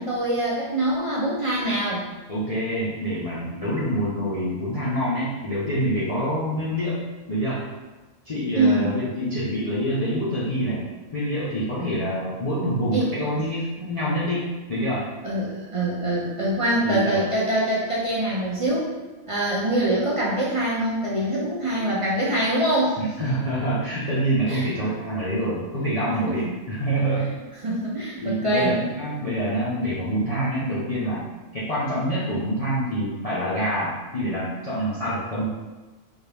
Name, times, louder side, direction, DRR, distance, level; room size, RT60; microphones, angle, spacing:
voice 1, 0.0-2.0 8.6-8.9 12.9-13.1 15.2-18.9 19.3-23.0 24.5-24.7 26.3-26.4 27.0-27.1 27.6-28.7, right 1 dB, 45° right, -6 dB, 0.4 m, -24 dB
voice 2, 2.3-7.7 8.2-10.8 11.1-15.0 16.8-17.2 23.0-27.3 28.2-31.2 31.5-35.5, equal, 35° left, -11 dB, 0.6 m, -26 dB
3.5 x 2.4 x 3.3 m, 1.2 s
omnidirectional pair, 1.4 m